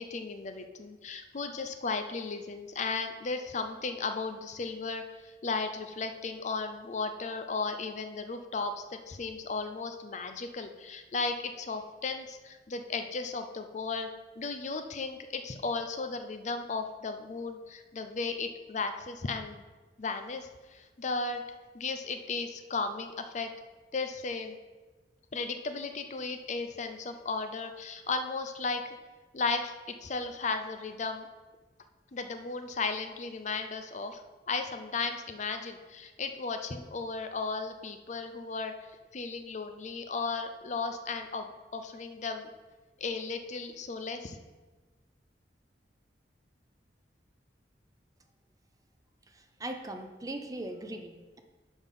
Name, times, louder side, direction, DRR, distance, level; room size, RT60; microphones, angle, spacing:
voice 1, 0.0-19.6 20.0-21.4 21.7-23.5 23.9-24.6 25.3-29.0 29.3-31.3 32.1-38.7 39.1-42.5 43.0-44.4, left 4 dB, 40° left, 7 dB, 0.5 m, -35 dB
voice 2, 49.3-51.4, right 1 dB, 20° right, 6 dB, 0.5 m, -40 dB
6.3 x 5.2 x 5.4 m, 1.3 s
head